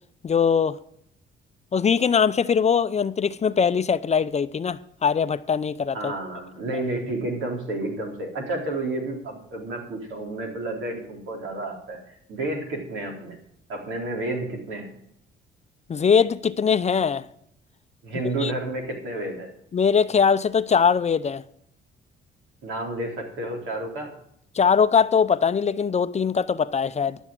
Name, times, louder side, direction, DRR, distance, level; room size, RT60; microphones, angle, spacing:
voice 1, 0.2-0.8 1.7-6.1 15.9-17.2 18.4-18.5 19.7-21.4 24.5-27.2, left 6 dB, 35° left, 0.6 m, -21 dB
voice 2, 5.9-13.4 13.7-14.9 18.0-19.5 22.6-24.1, right 2 dB, 80° right, 3.9 m, -31 dB
12.0 x 7.1 x 7.4 m
cardioid pair, 90°, 20 cm